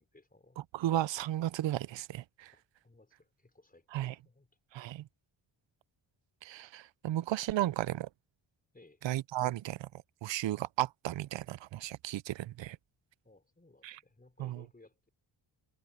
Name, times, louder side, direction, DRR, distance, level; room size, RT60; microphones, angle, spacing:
voice 1, 0.0-0.6 2.5-4.5 7.6-7.7 8.7-9.1 13.2-15.1, left 2 dB, 20° left, 5.0 m, -61 dB
voice 2, 0.7-2.5 3.9-4.1 4.7-5.1 6.4-8.1 9.0-9.9 10.2-12.8 13.8-14.0 14.4-14.6, right 14 dB, 65° right, 0.6 m, -34 dB
cardioid pair, 90°, 48 cm